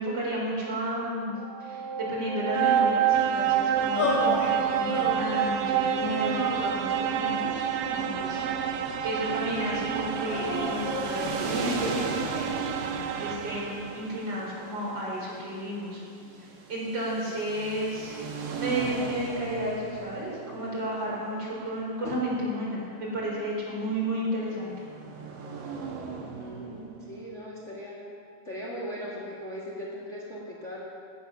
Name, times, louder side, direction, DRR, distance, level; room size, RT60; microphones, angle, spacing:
voice 1, 0.0-1.3 1.6-16.0 16.4-24.7, equal, 25° right, -5 dB, 4.4 m, -33 dB
sound 1, 1.4-14.2, right 8 dB, 85° right, 1.9 m, -28 dB
sound 2, 4.0-4.5 4.9-5.6 6.2-7.1 7.9-8.9 10.2-11.6, left 3 dB, 50° left, 4.0 m, -32 dB
sound 3, 9.4-27.3, right 4 dB, 60° right, 3.1 m, -40 dB
voice 2, 26.4-28.0 28.4-30.8, equal, 75° left, -4 dB, 0.6 m, -38 dB
17.0 x 10.5 x 7.1 m, 2.4 s
omnidirectional pair, 5.0 m